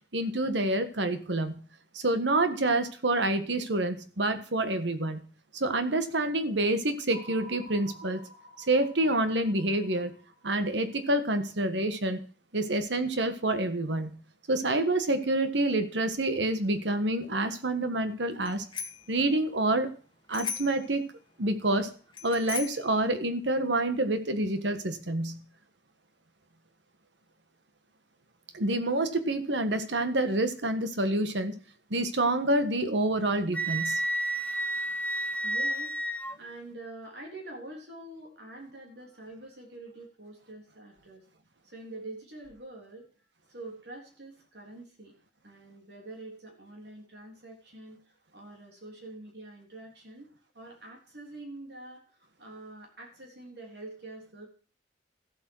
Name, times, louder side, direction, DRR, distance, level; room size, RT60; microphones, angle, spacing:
voice 1, 0.1-1.6 1.9-5.2 5.5-8.2 8.7-10.1 10.4-12.2 12.5-14.1 14.5-18.6 19.1-19.9 20.3-21.0 21.4-21.9 22.2-25.4 28.5-31.6 31.9-34.0, right 2 dB, 90° right, 9 dB, 1.6 m, -27 dB
sound 1, 7.1-11.3, right 1 dB, 40° right, 2.7 m, -51 dB
Bicycle bell, 18.4-19.1 20.3-20.9 22.1-22.9, left 6 dB, 25° left, 1.4 m, -37 dB
Wind instrument woodwind instrument, 33.5-36.3, right 1 dB, 10° left, 0.8 m, -30 dB
voice 2, 34.3-34.9 35.4-41.2 41.6-43.1 43.5-45.2 45.4-50.3 50.5-54.5, right 2 dB, 75° right, 0 dB, 3.5 m, -46 dB
14.0 x 8.1 x 6.2 m, 0.40 s
head